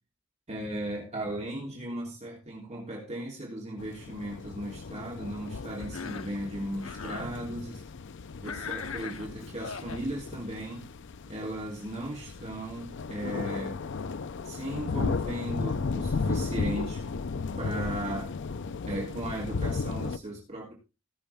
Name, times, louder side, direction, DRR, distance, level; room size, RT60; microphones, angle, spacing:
voice 1, 0.5-7.8 8.4-10.9 11.3-13.8 14.4-17.0 17.6-18.3 18.7-20.7, right 1 dB, 35° right, -3 dB, 3.3 m, -36 dB
sound 1, 3.8-20.2, left 4 dB, 60° left, 0.5 m, -35 dB
Cough, 5.8-6.4 6.8-7.3 8.4-10.1, left 6 dB, 75° left, 1.1 m, -39 dB
19.0 x 6.9 x 3.5 m, 0.30 s
head